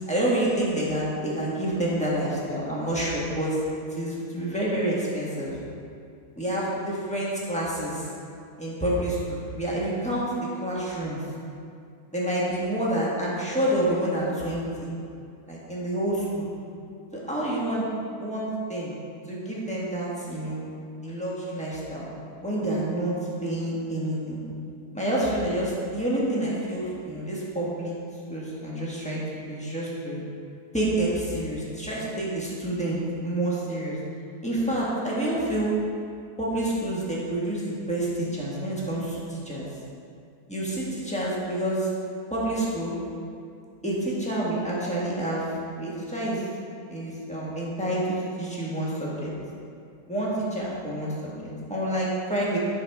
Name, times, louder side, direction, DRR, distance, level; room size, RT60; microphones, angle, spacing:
voice 1, 0.1-3.6 3.9-5.6 6.4-8.1 8.6-10.3 10.6-11.2 12.1-14.9 15.5-16.5 17.1-17.8 18.2-18.9 19.3-20.6 21.0-22.0 22.4-23.1 23.4-24.4 24.9-27.9 28.3-29.2 29.5-30.2 30.7-34.0 34.4-35.7 36.4-39.7 40.5-41.9 42.3-43.0 43.8-46.4 46.9-49.3 50.1-51.3 51.7-52.6, right 1 dB, 5° left, -7 dB, 1.4 m, -28 dB
9.4 x 6.2 x 3.5 m, 2.4 s
omnidirectional pair, 1.8 m